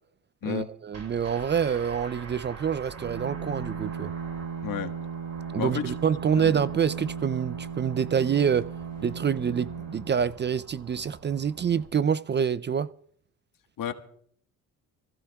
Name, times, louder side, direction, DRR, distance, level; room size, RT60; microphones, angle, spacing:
voice 1, 0.5-4.1 5.5-8.7 9.0-12.9, right 7 dB, 30° right, 0.5 m, -26 dB
sound 1, 0.9-11.9, right 5 dB, 45° right, 5.5 m, -46 dB
Bowed string instrument, 2.9-10.9, right 6 dB, 85° right, 5.4 m, -37 dB
voice 2, 5.6-5.9 6.4-6.5 13.8-13.9, left 9 dB, 60° left, 1.5 m, -31 dB
25.5 x 15.5 x 2.3 m
supercardioid pair, 70°, 37 cm